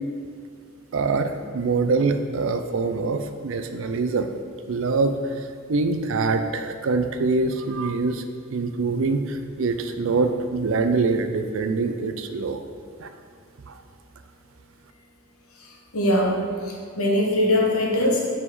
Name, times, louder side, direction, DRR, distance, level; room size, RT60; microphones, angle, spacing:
voice 1, 0.9-4.3 4.7-12.6 13.0-13.1 13.7-13.8, right 3 dB, 65° right, 8 dB, 0.5 m, -24 dB
voice 2, 15.9-16.4 17.0-18.4, left 1 dB, 90° left, -2 dB, 1.3 m, -21 dB
5.5 x 4.8 x 4.9 m, 2.2 s
head